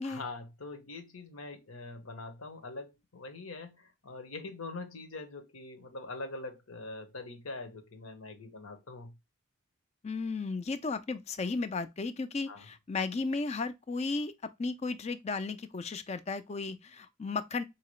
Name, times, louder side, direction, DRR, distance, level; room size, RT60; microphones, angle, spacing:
voice 1, 0.0-9.1 12.5-12.7, left 3 dB, 85° left, 1.0 m, -43 dB
voice 2, 10.0-14.3 14.6-17.6, left 3 dB, 30° left, 0.4 m, -34 dB
4.5 x 2.9 x 3.0 m
head